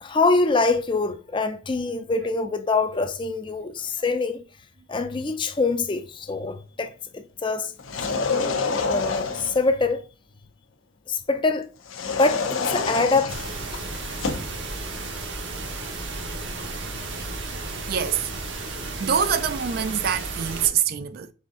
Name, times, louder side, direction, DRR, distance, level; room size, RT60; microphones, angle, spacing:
voice 1, 0.0-4.4 4.9-7.7 8.8-10.0 11.1-11.7 12.2-13.4, left 3 dB, 25° left, 0.4 m, -24 dB
sound 1, 7.8-9.7 11.9-14.5, left 4 dB, 80° left, 0.7 m, -27 dB
sound 2, 13.3-20.7, right 2 dB, 65° right, 1.0 m, -33 dB
voice 2, 17.9-18.3 19.0-21.3, right 8 dB, 50° right, 0.3 m, -25 dB
4.1 x 3.5 x 3.6 m
head